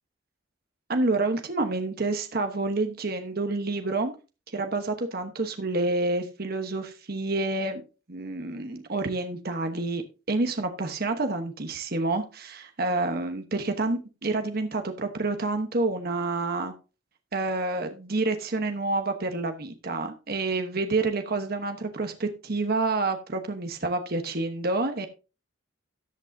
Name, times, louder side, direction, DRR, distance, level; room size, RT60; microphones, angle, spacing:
voice 1, 0.9-4.1 4.5-7.8 8.1-16.7 17.3-25.1, right 2 dB, 50° right, 6 dB, 1.1 m, -28 dB
14.0 x 8.2 x 2.7 m, 0.32 s
head